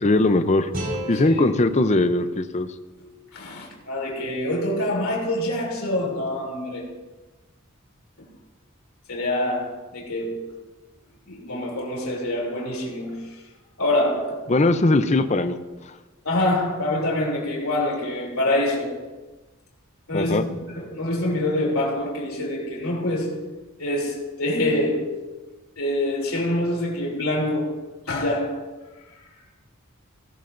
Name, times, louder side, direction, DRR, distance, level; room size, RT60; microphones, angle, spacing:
voice 1, 0.0-0.7 1.1-2.7 14.5-15.6 20.1-20.4, left 2 dB, 35° left, 0.6 m, -20 dB
sound 1, 0.7-3.8, equal, 45° right, 4.5 m, -36 dB
voice 2, 3.0-6.9 9.1-10.6 11.3-13.4 13.8-14.5 16.2-19.0 20.1-20.4 20.7-23.4 23.8-25.3 25.8-28.7, left 1 dB, 90° left, 3.0 m, -26 dB
18.5 x 13.0 x 2.6 m
head